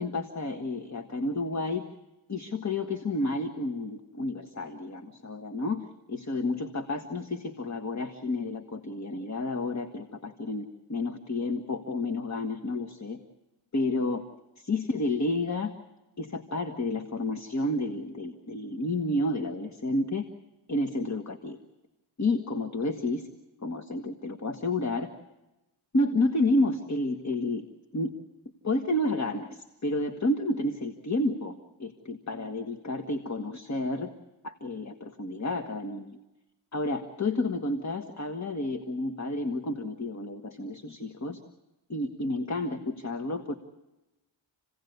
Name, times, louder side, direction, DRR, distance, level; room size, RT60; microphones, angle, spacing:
voice 1, 0.0-1.9 2.3-13.2 13.7-14.2 14.6-15.7 16.2-20.2 20.7-21.6 22.2-23.3 23.6-25.1 25.9-27.7 27.9-28.1 28.6-34.1 34.4-36.2 36.7-41.4 41.9-43.5, left 2 dB, 35° left, 6 dB, 1.6 m, -30 dB
29.0 x 17.5 x 8.1 m, 1.0 s
cardioid pair, 85°, 46 cm